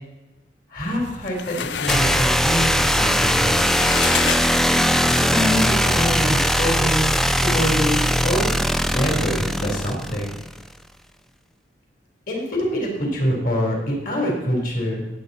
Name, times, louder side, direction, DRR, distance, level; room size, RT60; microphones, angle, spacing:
voice 1, 0.7-3.6 5.1-7.1 7.4-8.5 8.8-10.4 12.3-15.0, equal, 50° left, 0 dB, 3.6 m, -25 dB
sound 1, 0.9-5.1, left 8 dB, 75° left, 0.5 m, -30 dB
sound 2, 1.9-10.6, equal, ahead, 0.4 m, -20 dB
18.5 x 8.5 x 4.2 m, 1.0 s
head